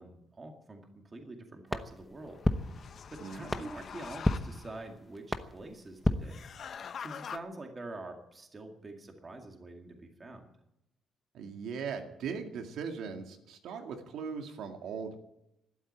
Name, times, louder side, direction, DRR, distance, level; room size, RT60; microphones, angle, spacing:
voice 1, 0.0-6.4 7.0-10.5, right 2 dB, 20° right, 3 dB, 2.1 m, -46 dB
sound 1, 1.7-7.0, left 1 dB, 5° left, 0.9 m, -35 dB
sound 2, 2.2-4.8 6.2-7.4, left 7 dB, 40° left, 0.7 m, -45 dB
voice 2, 3.2-3.7 11.3-15.2, right 6 dB, 70° right, 4 dB, 2.1 m, -39 dB
12.5 x 12.0 x 8.9 m, 0.85 s
cardioid pair, 165°, 0 cm